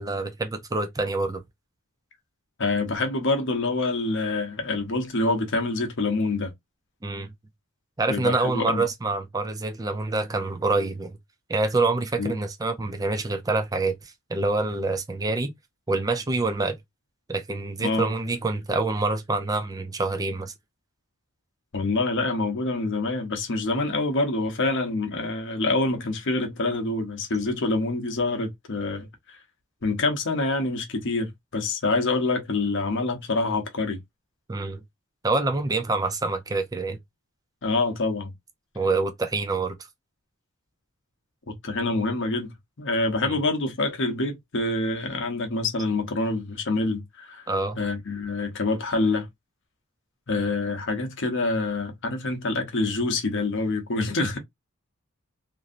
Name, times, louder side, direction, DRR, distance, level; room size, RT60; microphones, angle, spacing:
voice 1, 0.0-1.4 7.0-7.3 8.0-11.2 11.5-15.5 15.9-16.8 17.3-20.5 34.5-34.8 35.2-37.0 38.8-39.8 43.2-43.4 47.5-47.8, right 3 dB, 15° right, 0.5 m, -26 dB
voice 2, 2.6-6.5 8.1-8.8 12.2-12.4 17.8-18.1 21.7-29.1 29.8-34.0 37.6-38.3 41.6-47.4 47.8-49.3 50.3-54.4, left 2 dB, 60° left, 0.8 m, -26 dB
3.0 x 2.6 x 2.5 m
head